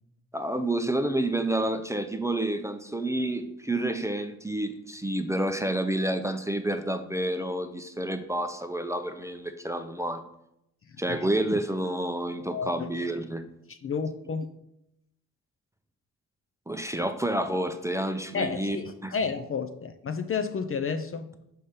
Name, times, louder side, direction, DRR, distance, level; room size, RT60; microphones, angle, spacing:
voice 1, 0.3-10.3 11.0-13.6 16.7-18.8 19.0-19.1, right 1 dB, 5° right, 8 dB, 0.6 m, -29 dB
voice 2, 12.5-12.9 13.7-14.5 18.3-21.3, left 5 dB, 35° left, 9 dB, 0.6 m, -31 dB
5.4 x 4.4 x 5.1 m, 0.81 s
hypercardioid pair, 40°, 41 cm